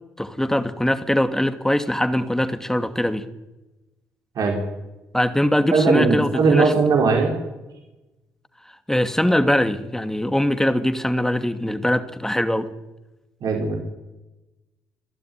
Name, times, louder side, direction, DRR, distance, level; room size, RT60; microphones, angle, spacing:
voice 1, 0.2-3.2 5.1-6.7 8.9-12.7, left 1 dB, 5° left, 9 dB, 2.5 m, -22 dB
voice 2, 5.7-7.3 13.4-13.8, right 4 dB, 60° right, 1 dB, 5.0 m, -19 dB
28.0 x 12.5 x 9.7 m, 1.0 s
hypercardioid pair, 50°, 7 cm